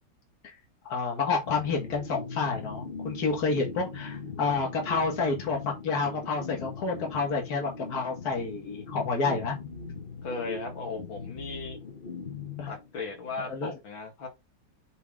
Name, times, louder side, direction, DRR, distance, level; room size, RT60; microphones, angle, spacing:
voice 1, 0.9-9.6 12.6-12.7 13.4-13.7, left 4 dB, 50° left, 2.4 m, -29 dB
sound 1, 1.4-13.3, left 4 dB, 35° left, 1.1 m, -40 dB
voice 2, 10.2-11.8 12.7-14.3, left 4 dB, 75° left, 2.6 m, -36 dB
8.2 x 3.6 x 3.7 m
omnidirectional pair, 2.1 m